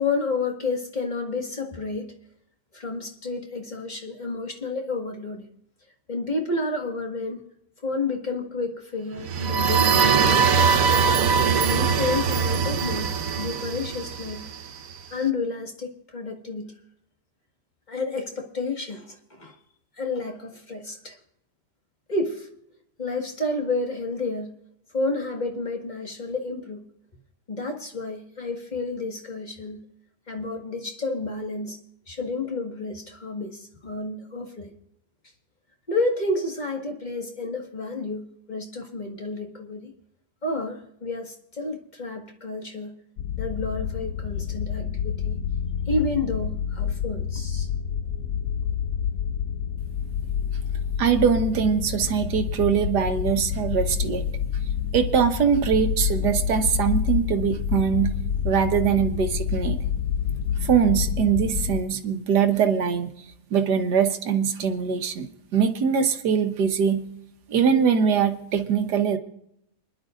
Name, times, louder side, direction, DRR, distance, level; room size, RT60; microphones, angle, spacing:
voice 1, 0.0-2.1 2.7-5.5 6.1-7.4 7.8-10.7 11.4-13.1 13.4-14.4 15.1-16.7 17.9-19.6 20.0-21.2 22.1-22.5 23.0-24.5 24.9-26.8 27.5-29.8 30.3-31.8 32.1-34.7 35.9-39.9 40.4-43.0 43.4-45.4 45.9-47.7, left 3 dB, 25° left, 2 dB, 1.8 m, -30 dB
sound 1, 9.2-14.9, right 6 dB, 60° right, 1.2 m, -22 dB
sound 2, 43.2-61.8, left 7 dB, 65° left, 1.0 m, -28 dB
voice 2, 51.0-54.2 54.9-58.1 58.5-59.8 60.6-63.1 63.5-67.0 67.5-69.2, right 7 dB, 80° right, 7 dB, 1.7 m, -22 dB
29.0 x 11.0 x 2.5 m, 0.75 s
omnidirectional pair, 1.8 m